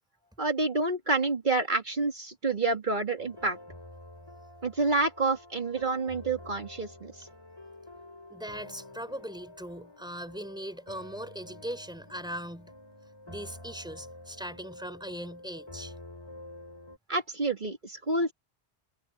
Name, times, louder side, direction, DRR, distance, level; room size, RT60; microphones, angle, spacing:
voice 1, 0.4-3.6 4.6-7.3 17.1-18.3, right 3 dB, 50° right, 2.3 m, -28 dB
sound 1, 3.2-17.0, left 1 dB, 25° left, 4.4 m, -48 dB
voice 2, 8.3-12.7 13.3-16.0, equal, 5° right, 3.7 m, -39 dB
omnidirectional pair, 1.0 m